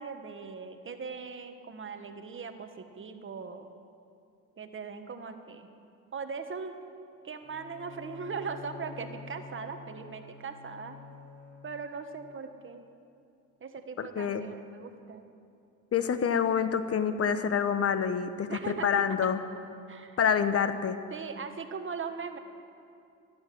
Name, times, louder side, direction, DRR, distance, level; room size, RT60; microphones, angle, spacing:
voice 1, 0.0-3.7 4.6-5.7 6.1-6.8 7.2-11.0 11.6-12.8 13.6-15.2 18.5-19.3 19.9-20.2 21.1-22.4, right 5 dB, 40° right, 7 dB, 1.4 m, -39 dB
Bowed string instrument, 7.4-12.2, left 4 dB, 70° left, 1.7 m, -48 dB
voice 2, 14.0-14.4 15.9-19.4 20.2-21.0, left 7 dB, 50° left, 11 dB, 1.0 m, -27 dB
12.5 x 12.0 x 9.4 m, 2.6 s
cardioid pair, 90°, 30 cm